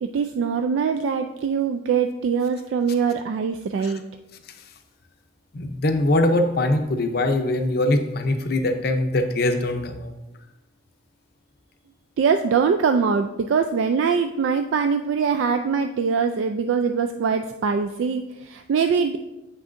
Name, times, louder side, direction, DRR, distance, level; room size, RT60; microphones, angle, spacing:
voice 1, 0.0-4.0 12.2-19.2, right 6 dB, 70° right, 7 dB, 0.3 m, -23 dB
voice 2, 5.5-10.1, left 1 dB, 50° left, 6 dB, 0.6 m, -22 dB
8.0 x 6.1 x 2.5 m, 1.0 s
head